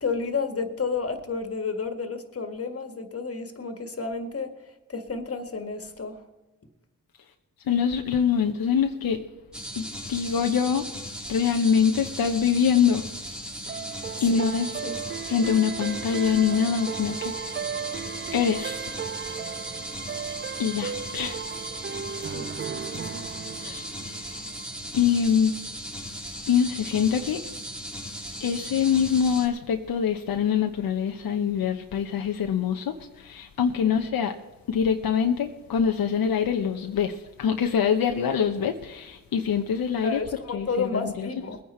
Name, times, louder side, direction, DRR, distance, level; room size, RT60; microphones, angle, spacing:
voice 1, 0.0-4.6 4.9-6.2 14.2-14.5 14.8-15.0 15.4-15.5 22.2-23.3 33.8-34.1 40.0-41.6, left 4 dB, 40° left, 1.8 m, -31 dB
voice 2, 7.7-9.2 9.8-10.9 11.3-13.0 13.7-13.8 14.2-14.7 15.3-17.6 18.3-19.0 20.6-21.4 23.6-24.4 24.9-25.5 26.5-27.4 28.4-34.4 34.7-40.2 40.5-41.3, left 7 dB, 75° left, 0.9 m, -24 dB
sound 1, 9.5-29.5, equal, ahead, 2.3 m, -37 dB
sound 2, 13.7-24.9, right 7 dB, 35° right, 0.4 m, -36 dB
21.0 x 9.5 x 4.4 m
cardioid pair, 65°, 36 cm